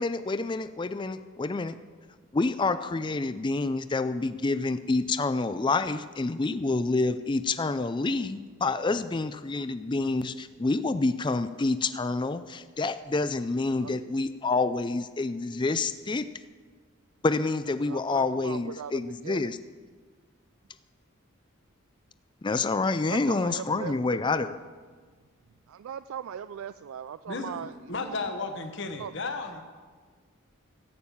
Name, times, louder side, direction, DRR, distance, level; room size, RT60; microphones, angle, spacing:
voice 1, 0.0-1.8 2.3-16.3 17.2-19.6 22.4-24.5, left 3 dB, 20° left, 12 dB, 0.4 m, -28 dB
voice 2, 17.9-19.6 23.1-24.2 25.7-28.3 29.0-29.1, right 8 dB, 75° right, 13 dB, 0.3 m, -39 dB
voice 3, 27.9-29.6, left 3 dB, 55° left, 5 dB, 1.0 m, -33 dB
14.0 x 8.8 x 7.1 m, 1.5 s
head